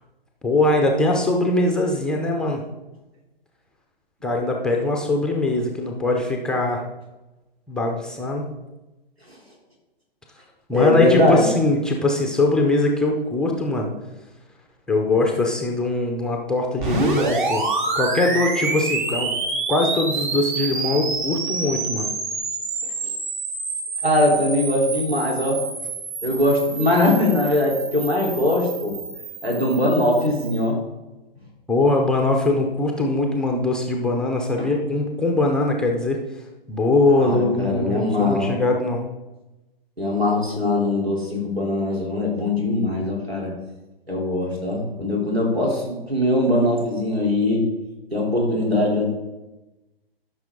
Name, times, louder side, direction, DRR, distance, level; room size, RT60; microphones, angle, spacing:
voice 1, 0.4-2.6 4.2-6.8 7.7-8.4 10.7-13.9 14.9-17.6 17.9-19.3 19.7-22.1 31.7-36.2 36.7-39.0, left 2 dB, 5° left, 1 dB, 0.5 m, -21 dB
voice 2, 10.7-11.5 24.0-25.6 26.2-28.9 29.4-30.8 34.6-34.7 37.1-38.6 40.0-43.5 44.1-47.6 48.1-49.0, left 1 dB, 90° right, -2 dB, 3.6 m, -21 dB
sound 1, 16.8-30.6, right 3 dB, 50° right, 2.4 m, -28 dB
13.5 x 6.1 x 3.7 m, 1.1 s
figure-of-eight pair, 125°, 30 cm